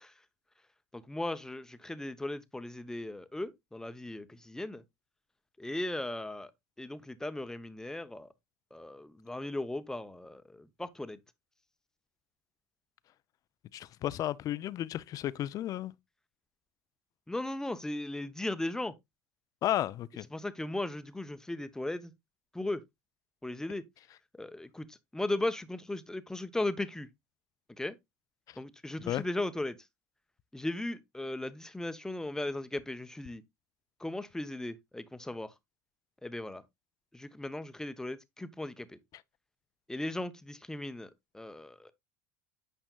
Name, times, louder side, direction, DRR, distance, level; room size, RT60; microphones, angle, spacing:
voice 1, 0.9-4.8 5.6-6.5 6.8-8.3 8.7-11.2 17.3-18.9 20.3-22.1 22.5-22.8 23.4-23.8 24.3-27.1 27.8-28.0 28.6-29.8 30.5-33.4 34.0-35.5 36.2-36.6 37.1-39.0 39.9-41.9, left 2 dB, 5° left, 0.8 m, -37 dB
voice 2, 13.7-15.9 19.6-20.3 28.5-28.6 29.1-29.2, left 12 dB, 45° left, 0.5 m, -33 dB
8.8 x 5.4 x 2.3 m
hypercardioid pair, 80°, 8 cm